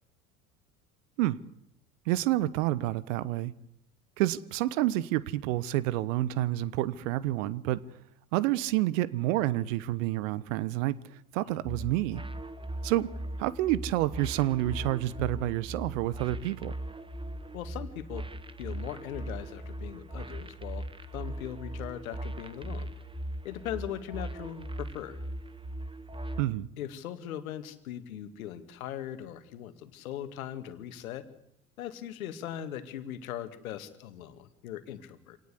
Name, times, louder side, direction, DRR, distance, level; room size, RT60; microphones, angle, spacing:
voice 1, 2.1-3.5 4.2-7.8 8.3-11.0 11.3-12.2 12.8-13.1 13.4-16.7 26.4-26.7, right 15 dB, 60° right, 1.2 m, -28 dB
sound 1, 11.6-26.4, right 1 dB, 10° right, 1.5 m, -39 dB
voice 2, 17.5-18.2 18.6-20.9 21.1-22.9 23.4-25.2 26.8-31.3 31.8-35.4, left 11 dB, 70° left, 2.2 m, -39 dB
26.0 x 18.0 x 8.4 m
figure-of-eight pair, 75°, 44 cm